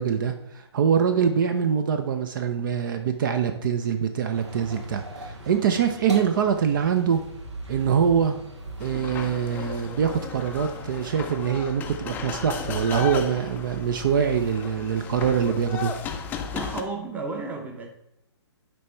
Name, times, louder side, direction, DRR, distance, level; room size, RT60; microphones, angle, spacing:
voice 1, 0.0-7.2 7.7-8.4 8.8-15.9, right 7 dB, 45° right, 8 dB, 0.6 m, -24 dB
sound 1, 4.3-11.0, right 1 dB, 85° right, 2.0 m, -40 dB
sound 2, 8.8-16.8, left 7 dB, 10° left, 0.4 m, -35 dB
voice 2, 16.5-17.9, right 3 dB, 10° right, 4 dB, 0.8 m, -32 dB
9.3 x 3.4 x 4.3 m, 0.84 s
figure-of-eight pair, 135°, 15 cm